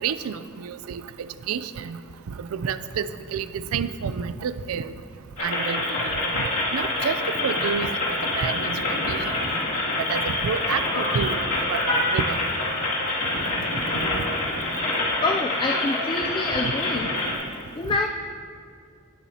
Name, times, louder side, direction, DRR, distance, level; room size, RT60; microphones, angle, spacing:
voice 1, 0.0-1.0 1.5-2.0 2.4-4.9 5.4-6.4 6.7-7.9 8.4-8.8 9.1-9.3 10.1-11.4 11.7-12.4 16.6-16.7, right 6 dB, 75° right, 13 dB, 0.4 m, -29 dB
sound 1, 5.4-17.3, left 2 dB, 65° left, 2.4 m, -26 dB
voice 2, 15.2-17.1 17.8-18.1, left 3 dB, 20° left, 3 dB, 0.3 m, -26 dB
19.0 x 7.1 x 2.8 m, 2.3 s
head